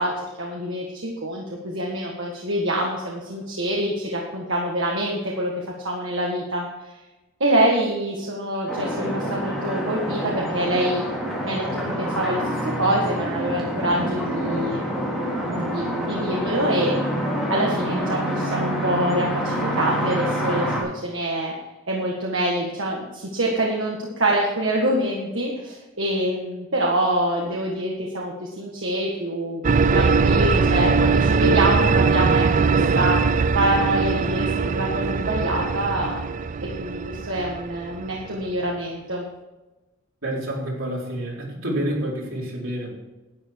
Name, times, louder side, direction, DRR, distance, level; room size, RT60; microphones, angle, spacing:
voice 1, 0.0-6.7 7.4-11.0 11.4-14.9 15.5-17.0 17.5-20.7 21.0-21.5 21.9-32.4 32.7-33.2 33.5-36.2 36.8-39.2, right 1 dB, 70° right, -2 dB, 1.8 m, -25 dB
sound 1, 8.7-20.8, equal, ahead, 3.2 m, -27 dB
sound 2, 29.6-38.5, right 4 dB, 35° right, 0.3 m, -21 dB
voice 2, 40.2-42.9, right 1 dB, 85° right, -4 dB, 4.5 m, -28 dB
11.5 x 9.6 x 4.7 m, 1.1 s
head